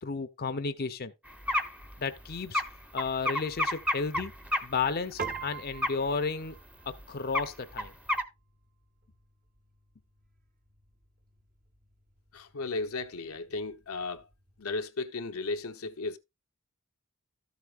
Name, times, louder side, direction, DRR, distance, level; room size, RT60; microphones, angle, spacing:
voice 1, 0.0-1.1 2.0-2.6 2.9-4.3 4.6-6.6 7.1-7.9, left 4 dB, 45° left, 0.7 m, -32 dB
sound 1, 1.3-5.4 5.7-6.2 6.6-6.7 6.9-7.0 7.3-8.2, left 1 dB, 5° right, 0.9 m, -31 dB
Piano, 5.2-14.8, right 5 dB, 40° right, 1.1 m, -47 dB
voice 2, 12.3-14.3 14.6-16.2, left 3 dB, 80° left, 0.9 m, -35 dB
13.0 x 8.2 x 2.4 m
head